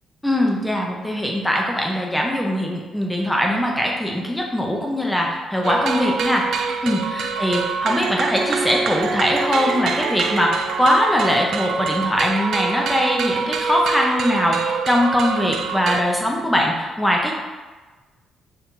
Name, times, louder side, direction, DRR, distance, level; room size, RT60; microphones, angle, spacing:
voice 1, 0.2-6.6 6.8-17.3, equal, 5° left, -1 dB, 0.7 m, -21 dB
sound 1, 5.6-16.0, right 5 dB, 70° right, 0.3 m, -25 dB
4.5 x 2.9 x 3.8 m, 1.3 s
cardioid pair, 90°, 0 cm